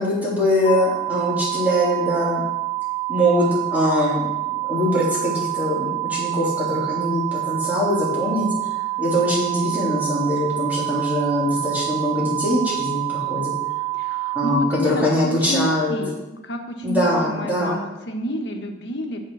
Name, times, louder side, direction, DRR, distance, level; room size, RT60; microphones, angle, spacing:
voice 1, 0.0-2.4 3.1-8.7 9.0-13.5 14.3-16.0 16.8-17.8, equal, 10° right, -7 dB, 3.5 m, -22 dB
sound 1, 0.6-14.6, right 15 dB, 35° left, 3.1 m, -27 dB
voice 2, 13.9-19.2, equal, 70° left, 3 dB, 1.3 m, -29 dB
7.7 x 7.0 x 6.2 m, 1.0 s
head